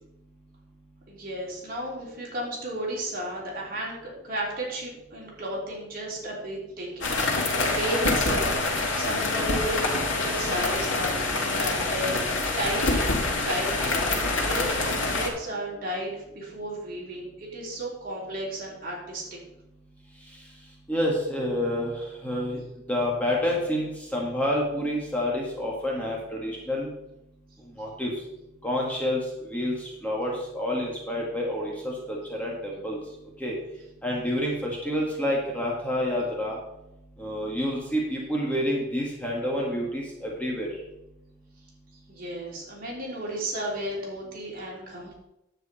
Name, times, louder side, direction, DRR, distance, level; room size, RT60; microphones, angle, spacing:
voice 1, 1.1-8.5 8.9-12.2 12.6-19.4 42.1-45.1, right 1 dB, 50° right, -4 dB, 3.6 m, -34 dB
sound 1, 7.0-15.3, left 3 dB, 90° left, 1.9 m, -26 dB
voice 2, 20.9-22.6 22.9-26.9 27.8-28.1 28.6-33.0 33.4-33.5 34.0-36.6 37.2-40.7, left 1 dB, 10° left, -3 dB, 1.9 m, -28 dB
9.8 x 8.0 x 4.3 m, 0.88 s
head